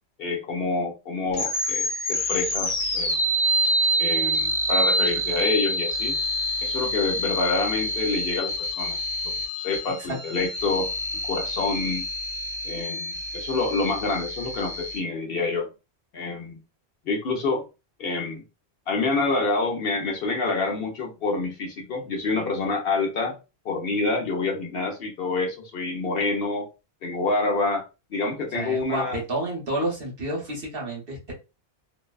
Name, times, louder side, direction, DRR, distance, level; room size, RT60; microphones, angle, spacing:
voice 1, 0.2-3.2 4.0-6.2 6.6-9.0 9.6-10.9 11.2-12.1 12.6-15.7 16.1-16.6 17.1-17.6 18.0-18.4 18.9-23.4 23.6-26.7 27.0-27.8 28.1-29.2, left 3 dB, 65° left, 1 dB, 0.9 m, -27 dB
sound 1, 1.3-15.0, equal, 40° left, 0.6 m, -27 dB
voice 2, 28.5-31.3, right 1 dB, 60° right, -2 dB, 1.2 m, -30 dB
2.6 x 2.1 x 2.3 m, 0.28 s
omnidirectional pair, 1.1 m